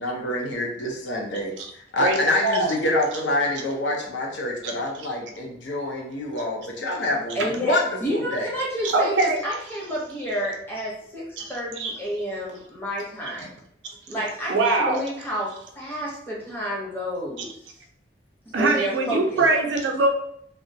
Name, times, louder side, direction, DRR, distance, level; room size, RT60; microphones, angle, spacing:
voice 1, 0.0-7.8 8.1-8.5, left 1 dB, 80° left, -1 dB, 0.6 m, -26 dB
voice 2, 2.0-2.7 4.6-4.7 8.9-9.4 11.4-11.5 11.8-11.9 14.5-15.0 18.5-20.1, right 2 dB, 80° right, 3 dB, 0.5 m, -22 dB
voice 3, 7.3-13.6 14.1-17.8 18.4-19.5, equal, 10° left, -5 dB, 0.7 m, -30 dB
2.3 x 2.1 x 2.6 m, 0.69 s
head